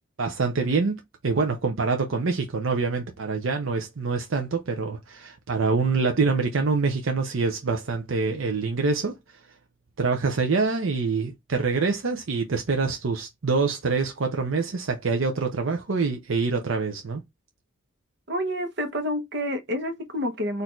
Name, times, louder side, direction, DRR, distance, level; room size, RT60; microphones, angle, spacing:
voice 1, 0.2-9.2 10.0-17.2, right 4 dB, 75° right, 0.7 m, -25 dB
voice 2, 18.3-20.6, equal, 55° right, 1.0 m, -28 dB
4.3 x 2.7 x 4.4 m
head